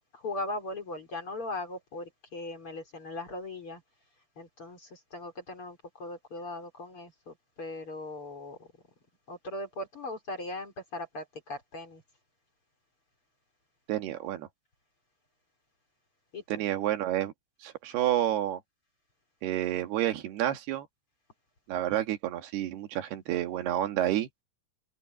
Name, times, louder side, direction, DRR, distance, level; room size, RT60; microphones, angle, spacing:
voice 1, 0.1-3.8 4.4-8.7 9.3-12.0 16.3-16.6, left 2 dB, 35° left, 4.7 m, -39 dB
voice 2, 13.9-14.5 16.5-17.3 17.6-18.6 19.4-20.9 21.7-24.3, right 12 dB, 80° right, 3.6 m, -29 dB
omnidirectional pair, 4.6 m